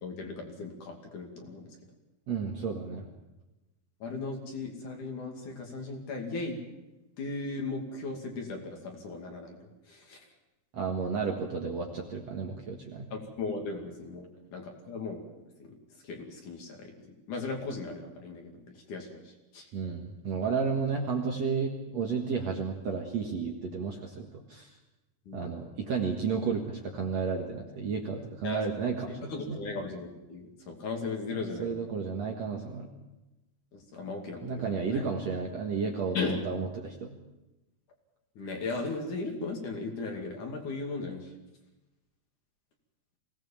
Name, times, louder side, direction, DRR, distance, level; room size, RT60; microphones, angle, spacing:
voice 1, 0.0-1.7 4.0-6.6 7.2-9.6 9.9-10.2 13.1-15.2 15.6-15.7 16.0-16.9 17.3-18.5 18.9-19.2 19.5-19.7 25.3-25.4 28.4-28.6 29.2-31.9 33.7-35.0 36.1-36.4 38.4-41.3, left 3 dB, 50° left, 2 dB, 3.8 m, -37 dB
voice 2, 2.3-3.1 10.7-13.1 19.7-24.8 25.3-29.6 31.6-32.9 34.4-37.2, right 5 dB, 50° right, 1 dB, 2.3 m, -32 dB
23.0 x 18.0 x 7.3 m, 1.0 s
omnidirectional pair, 4.7 m